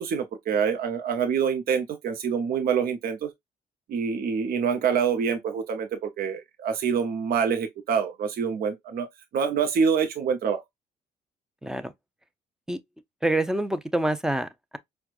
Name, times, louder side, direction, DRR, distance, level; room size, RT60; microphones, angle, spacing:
voice 1, 0.0-3.3 3.9-9.1 9.3-10.6, right 6 dB, 60° right, 0.7 m, -26 dB
voice 2, 11.6-11.9 12.7-12.8 13.2-14.8, right 1 dB, 5° right, 0.5 m, -26 dB
4.5 x 2.2 x 2.4 m
supercardioid pair, 75°, 17 cm